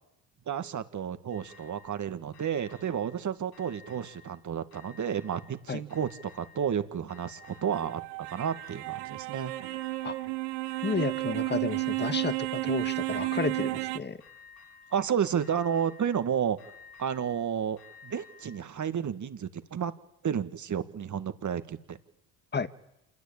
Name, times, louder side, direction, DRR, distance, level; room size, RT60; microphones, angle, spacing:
voice 1, 0.5-6.1 6.3-8.0 8.3-9.5 14.9-16.6 17.0-17.8 18.0-19.9 20.2-22.0, right 8 dB, 45° right, 11 dB, 2.0 m, -31 dB
sound 1, 1.3-2.0 2.3-3.2 3.5-4.4 4.7-5.6 5.9-6.8 7.1-7.9 8.3-9.1 9.5-10.3 10.6-11.5 11.8-12.7 13.0-13.9 14.2-15.1 15.4-16.3 16.6-18.6, left 5 dB, 65° left, 7.5 m, -54 dB
sound 2, 7.4-14.0, right 22 dB, 85° right, 0.9 m, -32 dB
voice 2, 10.8-14.2 22.5-22.7, left 5 dB, 25° left, 13 dB, 1.6 m, -32 dB
27.0 x 21.0 x 8.9 m, 0.84 s
supercardioid pair, 80°, 40 cm